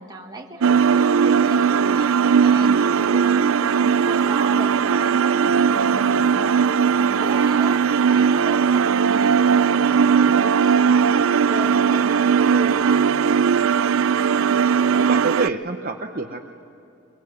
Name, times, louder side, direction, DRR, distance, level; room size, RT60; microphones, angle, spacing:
voice 1, 0.0-3.4 3.8-6.6 7.0-13.1, right 1 dB, 20° right, 1 dB, 1.9 m, -36 dB
sound 1, 0.6-15.5, right 6 dB, 75° right, 0.5 m, -18 dB
voice 2, 14.8-16.4, right 3 dB, 40° right, 4 dB, 0.9 m, -27 dB
23.5 x 22.5 x 8.0 m, 2.8 s
head